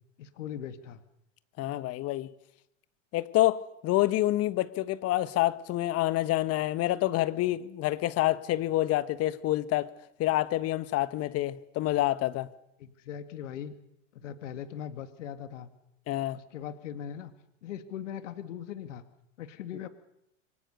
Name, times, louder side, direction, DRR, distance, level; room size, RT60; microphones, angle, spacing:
voice 1, 0.2-1.0 12.8-13.7 14.1-15.7 16.3-17.3 17.6-19.0 19.4-19.9, left 9 dB, 70° left, 2.1 m, -40 dB
voice 2, 1.6-2.3 3.1-9.9 10.2-12.5 16.1-16.4, left 15 dB, 40° left, 1.5 m, -27 dB
27.0 x 24.0 x 6.8 m
hypercardioid pair, 105°, 38 cm